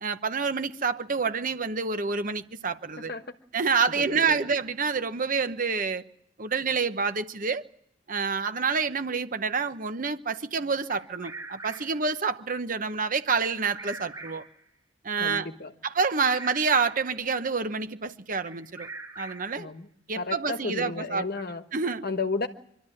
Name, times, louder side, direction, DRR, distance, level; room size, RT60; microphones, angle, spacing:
voice 1, 0.0-3.1 3.5-6.0 6.4-7.6 8.1-14.4 15.0-15.5 15.8-18.9 19.2-19.7 20.1-21.3 21.7-22.0, right 5 dB, 45° right, 0.9 m, -28 dB
voice 2, 3.0-3.3 4.0-4.5 15.2-15.7 19.6-19.9 20.1-21.6 22.0-22.5, left 3 dB, 50° left, 1.2 m, -33 dB
Bird vocalization bird call bird song, 10.9-12.1 13.4-14.6 16.0-17.1 18.5-19.6, right 3 dB, 20° right, 4.2 m, -42 dB
24.5 x 12.5 x 9.8 m
head